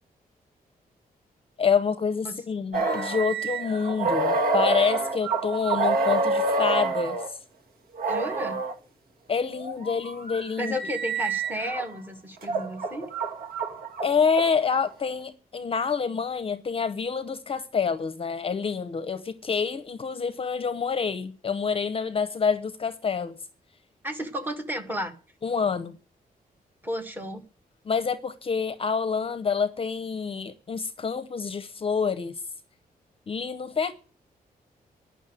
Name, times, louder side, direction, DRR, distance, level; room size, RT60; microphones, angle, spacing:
voice 1, 1.6-7.4 9.3-10.7 14.0-23.4 25.4-26.0 27.8-32.4 33.3-33.9, left 5 dB, 35° left, 0.7 m, -27 dB
sound 1, 2.7-7.3 8.0-8.7 9.5-11.9 12.4-14.8, right 3 dB, 75° right, 1.7 m, -27 dB
voice 2, 8.1-8.6 10.6-13.1 24.0-25.1 26.8-27.4, equal, 10° right, 1.6 m, -32 dB
10.5 x 6.2 x 9.0 m
wide cardioid pair, 160°, 15 cm